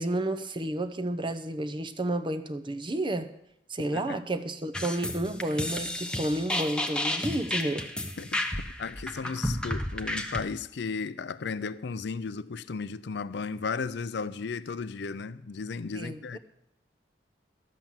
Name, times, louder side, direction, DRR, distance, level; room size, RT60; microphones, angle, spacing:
voice 1, 0.0-3.3 3.7-7.9 15.9-16.4, right 1 dB, 25° right, 0.8 m, -31 dB
sound 1, 4.7-10.4, left 1 dB, 5° left, 0.9 m, -32 dB
voice 2, 8.8-16.4, left 5 dB, 70° left, 0.5 m, -35 dB
12.0 x 7.8 x 7.3 m
head